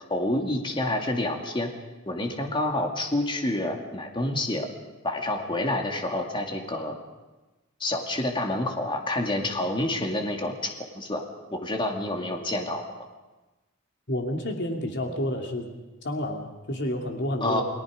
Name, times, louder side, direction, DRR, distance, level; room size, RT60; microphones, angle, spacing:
voice 1, 0.1-1.7 2.1-4.7 5.0-7.0 7.8-11.2 11.5-12.8 17.4-17.6, left 1 dB, 25° left, 2 dB, 2.3 m, -28 dB
voice 2, 14.1-15.7 16.0-17.6, left 1 dB, 55° left, 2 dB, 2.8 m, -29 dB
29.5 x 19.0 x 5.1 m, 1.1 s
head